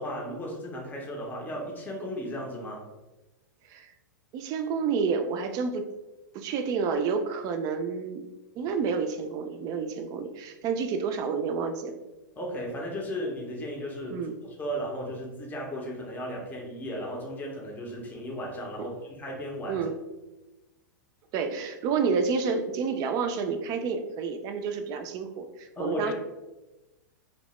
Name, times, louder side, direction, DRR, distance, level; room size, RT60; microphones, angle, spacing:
voice 1, 0.0-2.9 12.4-19.8 25.8-26.1, equal, 15° left, -2 dB, 0.6 m, -35 dB
voice 2, 4.3-5.8 6.3-8.2 8.5-12.0 14.1-14.3 18.8-18.9 19.7-20.0 21.3-26.1, right 5 dB, 40° right, 7 dB, 0.4 m, -29 dB
2.8 x 2.0 x 3.0 m, 1.1 s
hypercardioid pair, 105°, 10 cm